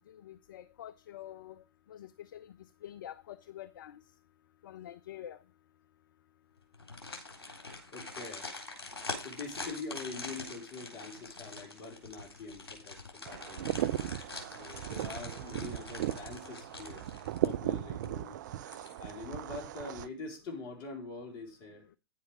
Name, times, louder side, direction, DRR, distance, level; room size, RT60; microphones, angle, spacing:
voice 1, 0.1-1.6 1.9-2.5 2.8-4.0 4.6-5.4, left 11 dB, 55° left, 0.5 m, -47 dB
sound 1, 6.7-17.7 18.0-18.1 18.6-19.2 19.6-19.7, left 3 dB, 70° left, 3.5 m, -45 dB
voice 2, 7.9-8.5 9.2-13.7 14.5-17.1 17.4-18.4 19.0-21.9, left 3 dB, 35° left, 4.1 m, -44 dB
sound 2, 13.3-20.1, right 12 dB, 45° right, 0.6 m, -36 dB
10.5 x 7.4 x 4.9 m
figure-of-eight pair, 110°, 13 cm